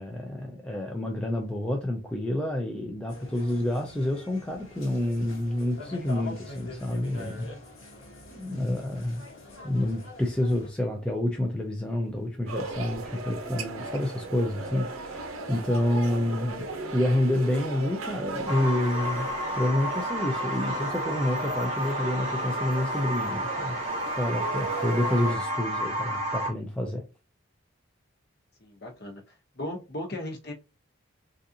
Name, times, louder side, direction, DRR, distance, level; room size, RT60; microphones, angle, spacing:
voice 1, 0.0-7.5 8.3-9.2 9.6-16.6 16.9-19.3 19.6-23.8 24.2-27.0, left 1 dB, 5° left, 0.4 m, -28 dB
sound 1, 3.1-10.7, left 2 dB, 70° left, 1.2 m, -44 dB
sound 2, 12.5-25.4, right 3 dB, 80° right, 0.7 m, -37 dB
sound 3, 18.5-26.5, equal, 30° right, 0.8 m, -31 dB
voice 2, 28.6-29.2 29.6-30.5, left 1 dB, 50° left, 1.0 m, -36 dB
3.9 x 2.5 x 2.7 m
head